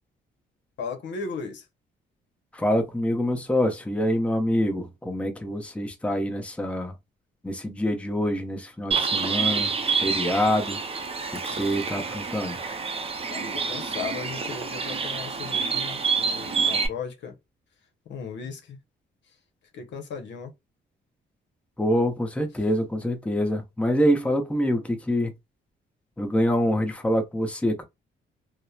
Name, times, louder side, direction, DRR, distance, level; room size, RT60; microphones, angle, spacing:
voice 1, 0.8-1.7 13.3-17.4 18.1-18.8 19.7-20.5, left 5 dB, 65° left, 0.8 m, -36 dB
voice 2, 2.5-7.0 7.4-9.7 10.0-10.8 11.4-12.6 21.8-25.3 26.2-27.8, equal, 5° left, 0.7 m, -25 dB
Bird, 8.9-16.9, right 5 dB, 30° right, 0.6 m, -28 dB
2.8 x 2.1 x 2.3 m
cardioid pair, 90°, 20 cm